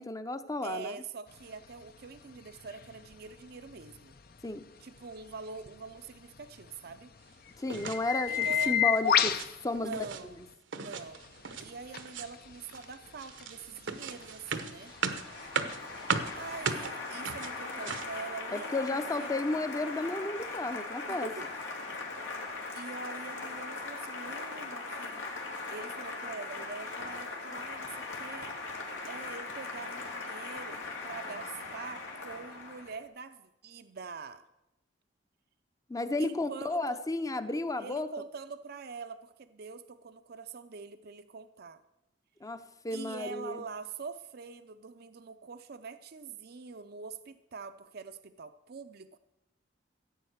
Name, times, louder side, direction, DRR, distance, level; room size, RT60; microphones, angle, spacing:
voice 1, 0.0-1.0 4.4-4.7 7.6-10.0 18.5-21.3 35.9-38.1 42.4-43.6, left 2 dB, 20° left, 11 dB, 0.7 m, -33 dB
voice 2, 0.6-4.1 4.8-7.1 8.3-8.8 9.7-10.4 10.7-11.2 11.6-14.9 16.3-19.4 21.1-21.5 22.4-25.3 25.7-28.5 29.0-30.8 31.0-34.4 36.2-37.0 37.8-41.8 42.9-49.2, right 4 dB, 55° right, 10 dB, 0.6 m, -44 dB
sound 1, 1.3-10.5 11.0-16.9, left 9 dB, 55° left, 0.7 m, -35 dB
sound 2, 7.7-8.0 8.4-8.7 9.1-9.5 9.8-10.2 10.7-11.7 12.0-12.4 12.7-18.2, right 5 dB, 75° right, 1.0 m, -37 dB
Applause, 14.1-33.0, left 3 dB, 90° left, 2.6 m, -40 dB
15.0 x 8.7 x 6.5 m, 0.91 s
head